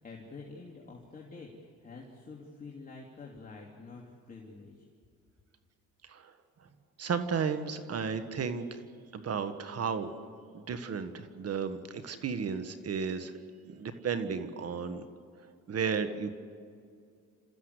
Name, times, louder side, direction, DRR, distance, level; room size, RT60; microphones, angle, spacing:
voice 1, 0.0-4.9, left 3 dB, 30° left, -2 dB, 2.9 m, -48 dB
voice 2, 7.0-8.8 9.1-10.1 10.5-13.3 13.7-15.1 15.7-16.3, right 6 dB, 55° right, 10 dB, 1.6 m, -33 dB
29.0 x 14.0 x 8.2 m, 2.3 s
cardioid pair, 90°, 30 cm